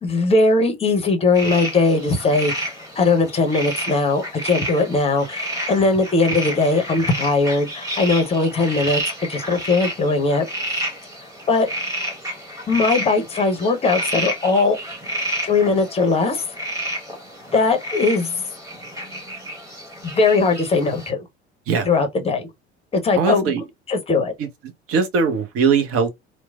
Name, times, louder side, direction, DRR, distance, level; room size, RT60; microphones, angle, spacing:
voice 1, 0.0-9.0 9.3-10.5 11.5-11.7 12.7-14.8 15.4-16.4 17.5-18.4 20.0-21.2 21.8-22.5 22.9-23.5 23.9-24.3, left 3 dB, 20° left, 0.7 m, -19 dB
sound 1, 1.3-21.1, right 1 dB, 10° right, 1.2 m, -30 dB
voice 2, 23.2-23.6 24.4-24.5 24.9-26.1, right 5 dB, 45° right, 0.7 m, -20 dB
3.0 x 2.0 x 2.3 m
figure-of-eight pair, 60°, 33 cm